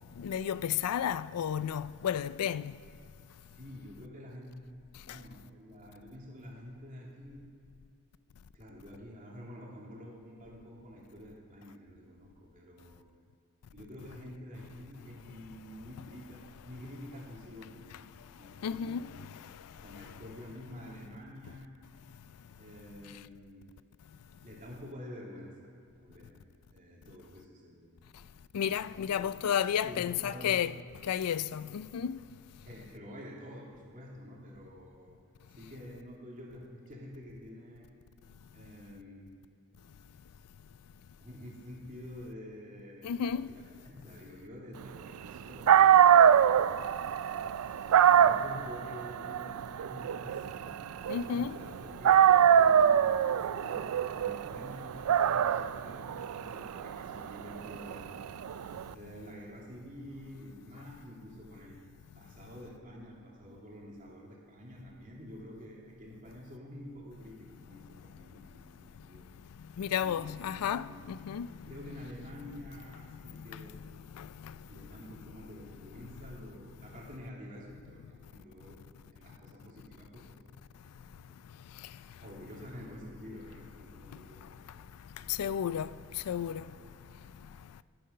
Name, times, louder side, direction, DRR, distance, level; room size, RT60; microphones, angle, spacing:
voice 1, 0.2-2.7 5.1-5.2 18.6-19.2 28.5-30.8 31.0-32.2 43.0-43.5 51.1-51.6 69.8-71.5 71.8-72.0 73.4-73.7 74.2-74.5 85.3-86.6, left 8 dB, 85° left, 0.4 m, -32 dB
voice 2, 3.5-4.5 5.0-7.5 8.5-13.0 13.7-18.1 18.4-19.3 19.8-21.7 22.6-23.6 24.4-26.4 26.7-27.9 29.8-30.6 32.7-35.2 35.5-37.9 38.5-39.3 41.2-43.2 43.5-46.6 47.8-50.8 51.1-58.4 58.9-61.8 62.1-69.3 70.0-71.2 71.6-73.8 74.6-81.6 82.2-84.8 86.1-87.3, equal, 35° right, 2.6 m, -48 dB
Dog, 45.4-45.5 45.7-51.7 52.0-58.8, right 9 dB, 70° right, 0.3 m, -24 dB
12.0 x 10.5 x 5.6 m
head